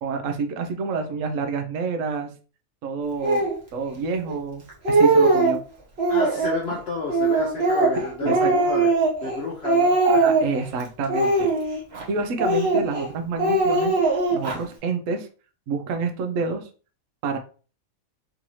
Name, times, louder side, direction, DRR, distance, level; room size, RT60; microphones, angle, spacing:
voice 1, 0.0-2.3 2.8-5.6 8.0-8.5 10.0-11.5 12.1-14.0 14.3-15.3 15.7-16.7 17.2-17.4, right 4 dB, 70° right, 6 dB, 1.0 m, -28 dB
Speech, 3.2-3.6 4.3-4.4 4.7-5.6 6.0-6.6 7.1-9.4 9.6-10.6 11.1-12.0 12.4-13.1 13.4-14.6, right 3 dB, 50° right, 1.3 m, -20 dB
voice 2, 6.1-8.9 9.2-10.0, left 4 dB, 55° left, -2 dB, 0.8 m, -31 dB
3.8 x 2.7 x 3.0 m, 0.37 s
omnidirectional pair, 1.4 m